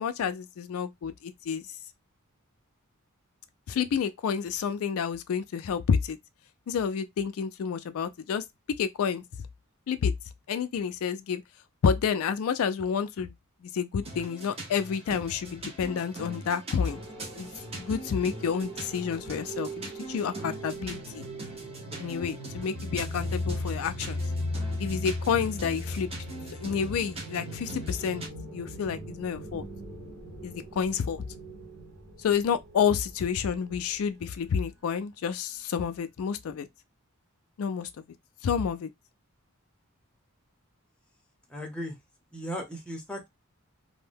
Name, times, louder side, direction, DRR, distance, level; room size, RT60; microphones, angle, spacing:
voice 1, 0.0-1.6 3.7-6.2 6.7-8.4 8.8-9.2 9.9-10.1 10.5-11.4 11.8-13.3 13.6-17.0 17.3-17.5 17.8-21.2 22.0-24.2 24.8-26.1 26.6-28.2 28.5-29.7 30.4-31.2 32.2-36.7 37.6-37.9 38.4-38.9, left 7 dB, 70° left, 0.3 m, -29 dB
sound 1, 14.0-28.3, right 2 dB, 30° right, 0.8 m, -42 dB
sound 2, 16.9-34.0, left 1 dB, 85° right, 1.1 m, -38 dB
voice 2, 41.5-42.0 42.3-43.3, equal, 5° left, 0.7 m, -36 dB
2.6 x 2.1 x 3.3 m
head